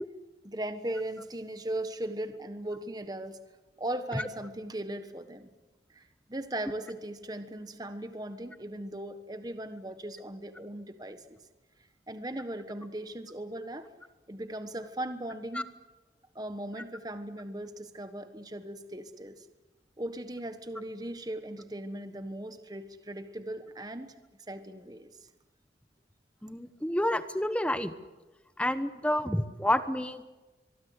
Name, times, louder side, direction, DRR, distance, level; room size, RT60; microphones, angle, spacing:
voice 1, 0.4-3.4 3.8-5.5 5.9-6.0 6.3-11.4 12.1-13.9 14.3-15.7 16.3-19.4 20.0-24.1 24.5-25.1, right 1 dB, 20° right, 9 dB, 1.2 m, -38 dB
voice 2, 26.4-27.9 28.6-30.3, left 1 dB, 5° left, 11 dB, 1.0 m, -29 dB
23.5 x 23.0 x 8.1 m, 1.2 s
head